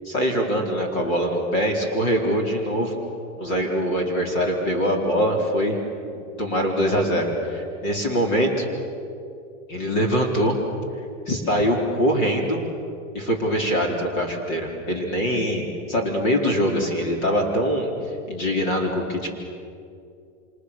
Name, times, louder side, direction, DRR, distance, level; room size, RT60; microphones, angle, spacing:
voice 1, 0.0-3.0 3.4-5.8 6.1-8.6 9.7-10.6 11.3-12.6 13.1-17.9 18.3-19.3, equal, 35° left, 1 dB, 4.1 m, -23 dB
29.0 x 27.0 x 6.8 m, 2.5 s
supercardioid pair, 175°, 42 cm